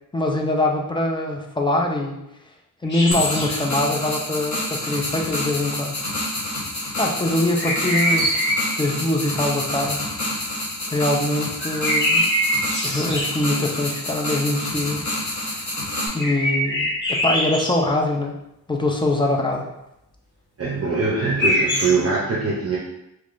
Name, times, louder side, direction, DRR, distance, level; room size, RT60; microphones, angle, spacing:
voice 1, 0.1-2.2 2.8-6.0 7.0-10.0 10.9-12.3 12.8-15.6 16.1-18.3 18.7-19.7, left 1 dB, 15° left, 0 dB, 0.4 m, -23 dB
sound 1, 2.9-3.6 7.6-8.8 11.6-13.5 16.2-17.8 21.2-21.9, equal, 30° left, 1.0 m, -23 dB
sound 2, 3.1-16.1, left 1 dB, 55° left, 1.1 m, -28 dB
voice 2, 20.6-22.8, right 4 dB, 45° right, -5 dB, 0.6 m, -22 dB
3.4 x 3.1 x 2.5 m, 0.88 s
wide cardioid pair, 135°, 34 cm